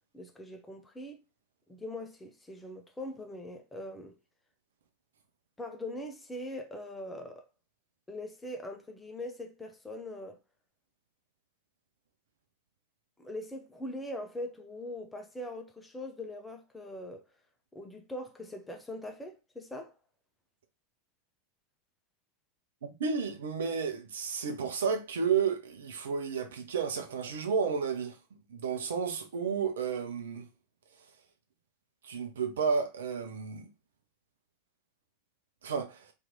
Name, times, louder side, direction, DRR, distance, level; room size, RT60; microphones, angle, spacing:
voice 1, 0.1-1.2 1.7-4.2 5.6-7.5 8.1-10.4 13.2-17.2 17.7-19.9, left 1 dB, 10° left, 0.6 m, -41 dB
voice 2, 22.8-28.2 28.5-30.5 32.0-33.7 35.6-36.1, right 6 dB, 60° right, 0.7 m, -32 dB
3.0 x 2.6 x 3.9 m
figure-of-eight pair, 90°, 0 cm